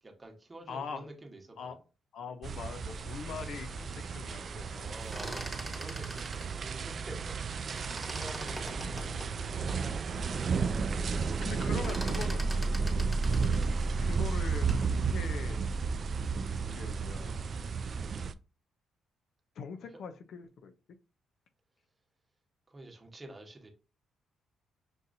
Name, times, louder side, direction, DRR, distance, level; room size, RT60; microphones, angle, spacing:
voice 1, 0.0-1.8 3.3-3.6 4.8-9.2 9.5-10.2 11.6-12.1 19.8-20.0 22.7-23.7, right 1 dB, 20° right, 1.1 m, -49 dB
voice 2, 0.7-1.0 1.6-1.8 2.1-5.0 8.4-8.6 11.4-12.5 14.0-15.6 16.7-17.4 19.6-20.7, left 6 dB, 65° left, 0.5 m, -42 dB
sound 1, 2.4-18.3, right 4 dB, 45° right, 0.3 m, -32 dB
sound 2, 4.9-7.4 7.7-9.8 10.3-10.4 10.7-11.1 11.4-14.9, right 1 dB, ahead, 1.2 m, -43 dB
6.1 x 2.6 x 2.6 m
cardioid pair, 90°, 0 cm